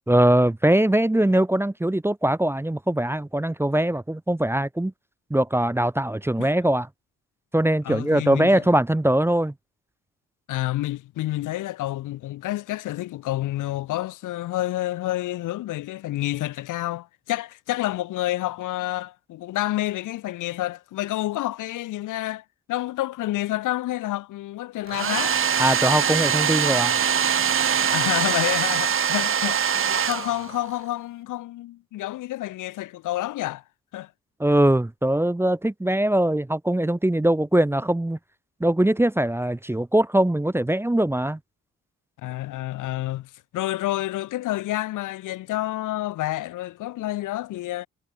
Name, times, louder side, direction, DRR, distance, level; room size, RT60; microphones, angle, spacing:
voice 1, 0.1-4.9 5.3-6.9 7.5-9.5 25.6-27.0 34.4-38.2 38.6-41.4, right 1 dB, 5° right, 0.9 m, -21 dB
voice 2, 7.8-8.6 10.5-25.4 27.9-33.6 33.9-34.1 42.2-47.9, left 15 dB, 70° left, 1.1 m, -29 dB
Domestic sounds home sounds, 24.9-30.7, right 7 dB, 40° right, 1.4 m, -23 dB
supercardioid pair, 65°, 32 cm